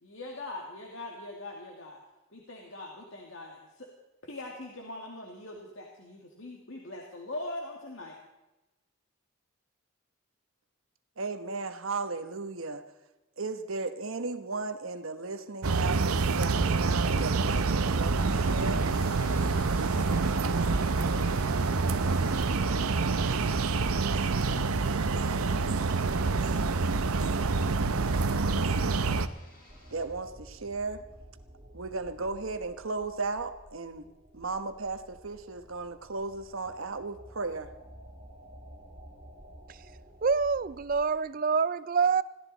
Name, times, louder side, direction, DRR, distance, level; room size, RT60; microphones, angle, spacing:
voice 1, 0.0-2.0 2.3-3.9 4.2-8.2, left 2 dB, 60° left, 2.1 m, -42 dB
voice 2, 11.2-12.8 13.4-18.8 29.9-31.0 31.7-34.1 34.3-37.7, right 3 dB, 70° right, 1.1 m, -35 dB
sound 1, 15.6-29.3, right 4 dB, 90° right, 0.8 m, -27 dB
sound 2, 18.2-30.1, left 1 dB, 40° left, 4.4 m, -52 dB
sound 3, 29.7-41.0, right 1 dB, 20° right, 3.0 m, -52 dB
voice 3, 40.2-42.2, right 5 dB, 40° right, 0.4 m, -26 dB
21.5 x 16.0 x 4.1 m
head